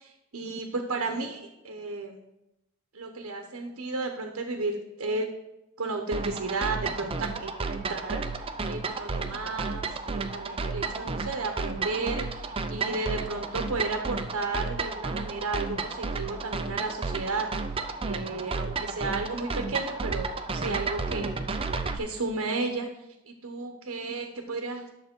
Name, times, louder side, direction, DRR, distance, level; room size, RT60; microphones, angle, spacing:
voice 1, 0.0-2.2 2.9-5.3 5.8-21.3 21.9-22.9 23.3-24.9, right 3 dB, 65° right, 3 dB, 0.9 m, -33 dB
sound 1, 6.1-22.0, right 4 dB, 25° right, 0.5 m, -32 dB
10.0 x 6.6 x 4.5 m, 0.92 s
head